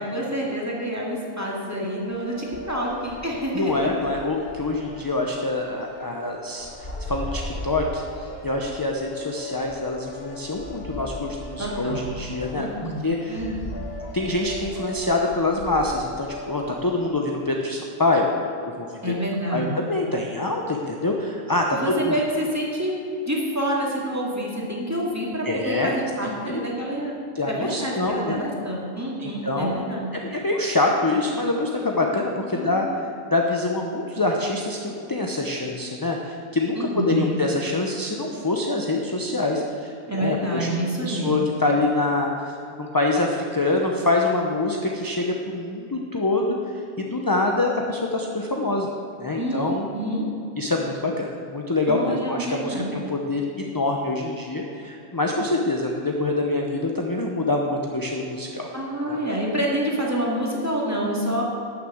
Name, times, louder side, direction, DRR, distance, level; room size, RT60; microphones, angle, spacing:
voice 1, 0.0-3.9 11.6-12.1 12.5-13.0 13.3-13.6 19.0-19.7 21.7-22.9 23.2-27.2 27.5-30.1 32.5-32.9 36.7-37.3 40.1-41.5 49.4-49.7 49.9-50.3 51.9-53.0 58.7-61.4, right 1 dB, 10° right, -3 dB, 2.2 m, -27 dB
sound 1, 2.0-17.1, left 1 dB, 45° left, 1.6 m, -37 dB
voice 2, 3.5-13.5 14.1-18.3 18.8-19.1 19.5-21.8 22.0-22.2 25.4-25.9 26.2-26.7 27.3-28.4 29.2-29.9 30.2-48.9 49.2-49.9 50.6-58.7 59.1-59.2, left 2 dB, 20° left, 0 dB, 0.6 m, -25 dB
12.0 x 6.8 x 7.8 m, 2.7 s
omnidirectional pair, 1.5 m